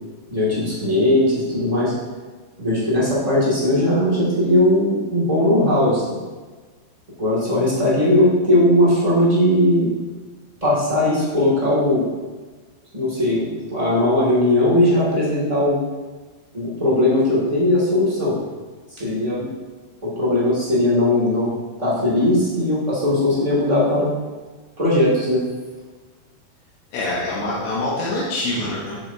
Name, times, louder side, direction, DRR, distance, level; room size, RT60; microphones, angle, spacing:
voice 1, 0.3-1.9 2.6-6.1 7.2-9.9 10.6-12.0 12.9-15.8 16.5-18.4 18.9-19.5 20.0-21.5 21.8-24.1 24.8-25.4, left 1 dB, 20° right, -9 dB, 0.9 m, -18 dB
voice 2, 26.9-29.0, left 2 dB, 75° left, -6 dB, 3.1 m, -25 dB
7.9 x 7.6 x 2.8 m, 1.4 s
omnidirectional pair, 4.7 m